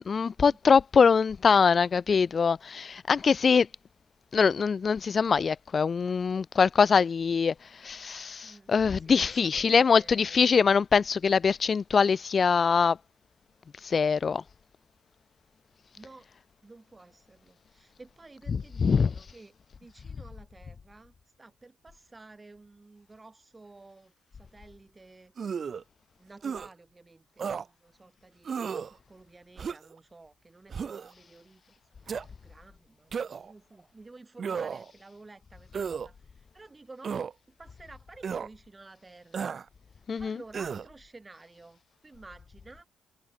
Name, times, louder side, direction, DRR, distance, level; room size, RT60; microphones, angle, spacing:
voice 1, 0.1-3.7 4.3-7.5 7.8-13.0 13.8-14.4 18.5-19.1 40.1-40.4, left 5 dB, 40° left, 0.4 m, -23 dB
voice 2, 8.4-10.5 16.0-16.3 16.6-19.5 19.8-24.1 24.4-25.7 26.2-28.5 29.1-39.6 39.9-42.9, right 3 dB, 20° right, 7.5 m, -52 dB
sound 1, 25.4-25.8 26.4-26.7 27.4-27.7 28.5-28.9 29.6-30.0 30.7-31.1 32.1-32.3 33.1-33.5 34.4-34.9 35.7-36.1 37.0-37.3 38.2-38.5 39.3-39.7 40.5-40.9, right 6 dB, 45° right, 1.2 m, -33 dB
cardioid pair, 90°, 0 cm